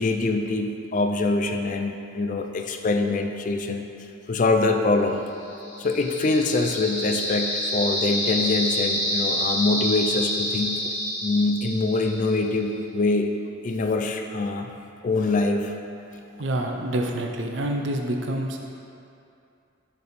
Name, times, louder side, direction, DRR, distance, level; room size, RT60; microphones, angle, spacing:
voice 1, 0.0-3.9 4.3-5.2 5.8-10.9 11.2-13.3 13.6-14.7 15.0-15.7, left 3 dB, 40° left, 5 dB, 0.3 m, -24 dB
sound 1, 5.5-12.4, equal, 10° left, 1.1 m, -28 dB
voice 2, 16.4-18.7, right 1 dB, 60° right, 2 dB, 0.5 m, -27 dB
6.8 x 3.4 x 4.1 m, 2.6 s
head